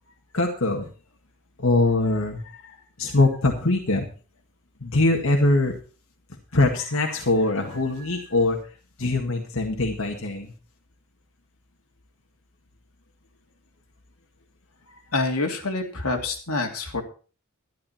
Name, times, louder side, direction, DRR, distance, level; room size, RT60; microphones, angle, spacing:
voice 1, 0.3-0.9 1.6-4.1 4.8-5.8 6.5-8.6 9.0-10.5, left 2 dB, 70° left, 1 dB, 1.9 m, -22 dB
voice 2, 15.1-17.0, left 3 dB, 90° left, 3 dB, 2.6 m, -26 dB
12.5 x 11.5 x 4.4 m, 0.37 s
head